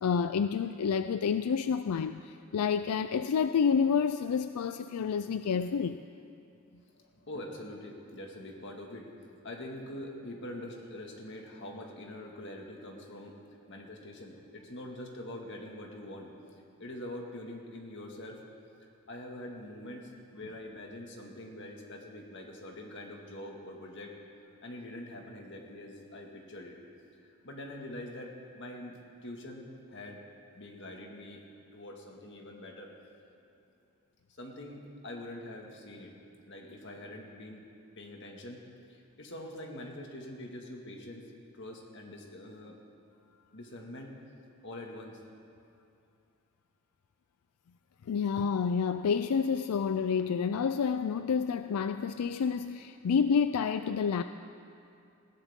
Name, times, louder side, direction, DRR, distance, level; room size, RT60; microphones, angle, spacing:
voice 1, 0.0-6.0 48.1-54.2, left 6 dB, 90° left, 10 dB, 0.4 m, -29 dB
voice 2, 6.7-9.1 9.4-18.4 19.1-24.2 24.6-26.8 27.4-29.0 29.2-30.2 30.5-31.4 31.7-32.9 34.3-36.2 36.5-37.7 38.0-38.6 38.9-41.3 41.5-42.8 43.5-44.1 44.6-45.2, left 1 dB, 55° left, 1 dB, 1.9 m, -44 dB
19.5 x 17.0 x 3.7 m, 2.6 s
head